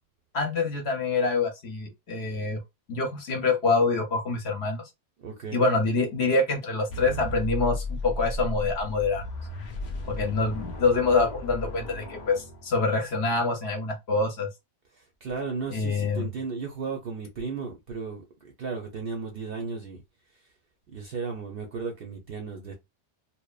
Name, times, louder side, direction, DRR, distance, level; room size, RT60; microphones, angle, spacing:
voice 1, 0.3-2.6 2.9-4.9 5.5-9.3 10.1-14.5 15.7-16.3, left 3 dB, 55° left, 0.8 m, -26 dB
voice 2, 5.2-5.6 14.9-20.0 20.9-22.7, right 4 dB, 60° right, 0.6 m, -35 dB
sound 1, 6.9-13.1, equal, 85° left, 0.4 m, -35 dB
2.8 x 2.0 x 2.2 m
omnidirectional pair, 1.5 m